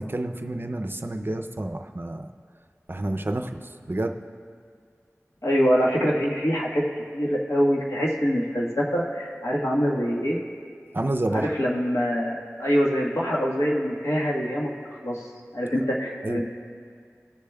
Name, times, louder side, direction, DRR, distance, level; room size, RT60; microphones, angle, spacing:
voice 1, 0.0-2.3 2.9-3.6 3.9-4.2 10.9-11.5 16.2-16.4, right 1 dB, 40° right, 5 dB, 0.5 m, -29 dB
voice 2, 5.4-6.8 7.1-10.4 11.3-14.7 15.0-15.2 15.5-16.4, equal, 70° left, -4 dB, 1.4 m, -24 dB
17.5 x 6.8 x 2.3 m, 2.1 s
wide cardioid pair, 45°, 5 cm